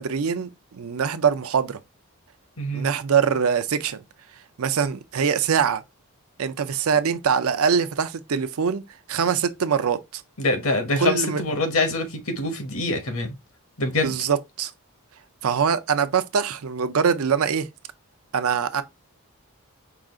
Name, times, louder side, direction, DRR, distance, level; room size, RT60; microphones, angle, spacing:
voice 1, 0.0-1.8 2.7-4.0 4.6-5.8 6.4-8.8 9.1-10.2 11.0-11.4 14.0-14.7 15.4-17.7 18.3-18.8, right 6 dB, 70° right, 0.5 m, -23 dB
voice 2, 2.6-2.9 10.4-13.4 13.8-14.2, left 2 dB, 65° left, 1.1 m, -25 dB
4.9 x 2.4 x 3.6 m
head